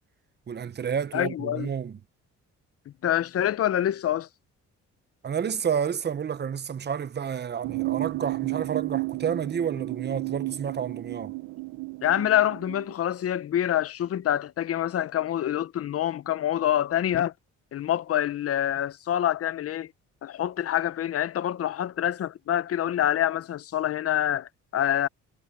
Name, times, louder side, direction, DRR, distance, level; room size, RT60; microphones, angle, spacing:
voice 1, 0.5-2.0 5.2-11.3, right 7 dB, 35° right, 0.9 m, -30 dB
voice 2, 1.1-1.7 3.0-4.3 12.0-17.3 17.7-19.9 20.2-25.1, left 11 dB, 50° left, 0.7 m, -26 dB
sound 1, 7.6-12.9, right 23 dB, 85° right, 1.1 m, -33 dB
cardioid pair, 90°, 30 cm